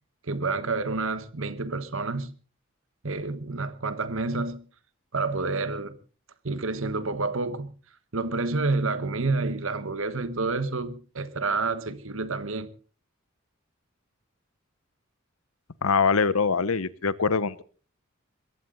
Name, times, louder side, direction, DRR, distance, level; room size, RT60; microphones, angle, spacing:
voice 1, 0.2-2.3 3.0-4.6 5.1-6.0 6.4-7.7 8.1-12.7, right 3 dB, 65° right, 1.3 m, -29 dB
voice 2, 15.8-17.6, left 5 dB, 80° left, 0.9 m, -23 dB
21.5 x 15.5 x 4.0 m
head